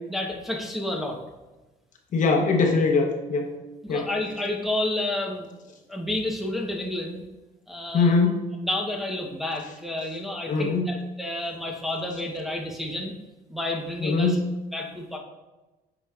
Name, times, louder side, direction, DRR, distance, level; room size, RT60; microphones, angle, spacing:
voice 1, 0.1-1.2 3.8-5.5 5.9-7.2 7.7-8.1 8.6-13.1 13.5-14.4 14.7-15.2, left 1 dB, ahead, -1 dB, 0.9 m, -30 dB
voice 2, 2.1-3.5 3.9-4.1 7.9-8.4 10.5-11.0 14.0-14.5, left 4 dB, 50° left, 2 dB, 0.9 m, -22 dB
8.5 x 5.0 x 2.4 m, 1.1 s
cardioid pair, 110°, 17 cm